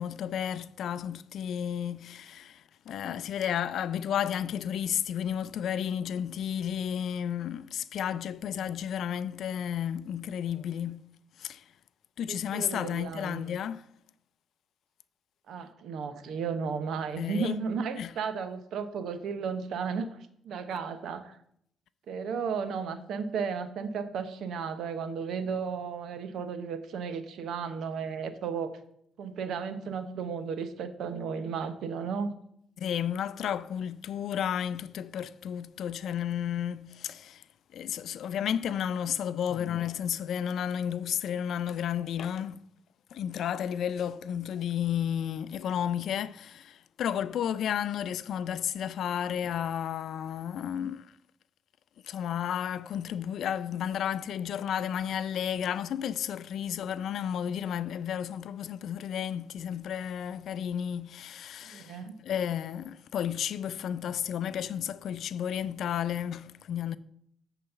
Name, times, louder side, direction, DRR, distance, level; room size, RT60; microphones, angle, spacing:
voice 1, 0.0-11.0 11.4-11.6 12.2-13.8 17.2-17.5 17.9-18.1 32.8-37.4 37.7-42.6 43.1-51.1 52.0-67.0, left 9 dB, 70° left, 0.4 m, -32 dB
voice 2, 12.3-13.6 15.5-21.4 22.1-28.8 29.2-32.3 61.7-62.2, right 6 dB, 75° right, 0.9 m, -34 dB
7.8 x 4.1 x 6.7 m
cardioid pair, 90°, 0 cm